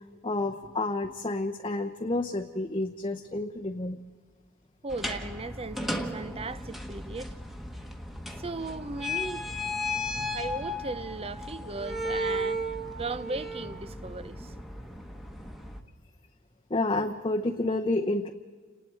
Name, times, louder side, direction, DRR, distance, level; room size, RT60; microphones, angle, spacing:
voice 1, 0.2-4.0 10.2-10.3 16.7-18.3, left 2 dB, 25° left, 0.8 m, -29 dB
voice 2, 4.8-7.3 8.4-9.5 10.3-14.5, right 3 dB, 25° right, 0.6 m, -37 dB
sound 1, 4.9-15.8, left 1 dB, ahead, 1.3 m, -35 dB
30.0 x 19.5 x 4.7 m
head